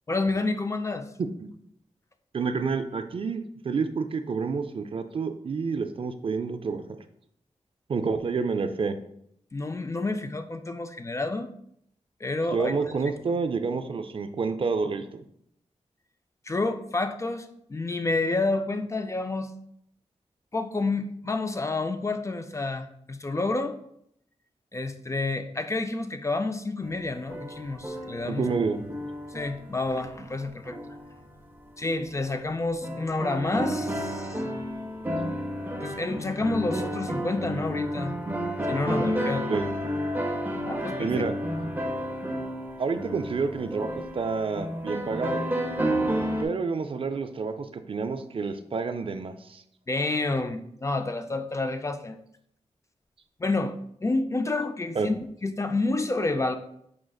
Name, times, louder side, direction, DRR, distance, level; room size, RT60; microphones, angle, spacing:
voice 1, 0.1-1.1 9.5-11.5 12.2-12.7 13.1-13.2 16.5-19.5 20.5-23.8 24.7-28.5 29.3-30.8 31.8-34.4 35.8-38.2 38.7-39.5 40.6-41.1 41.6-41.7 49.9-52.2 53.4-53.8 54.0-56.6, left 2 dB, 25° left, 8 dB, 0.3 m, -29 dB
voice 2, 2.3-6.8 7.9-9.0 12.5-15.2 28.3-28.8 39.5-39.7 41.0-41.3 42.8-43.9 44.1-45.4 46.4-49.6 55.0-55.1, right 4 dB, 50° right, 9 dB, 0.3 m, -29 dB
sound 1, 26.8-31.4 31.9-32.0 32.8-46.4, equal, 15° right, 0.6 m, -31 dB
5.0 x 3.7 x 2.3 m, 0.70 s
wide cardioid pair, 80°, 12 cm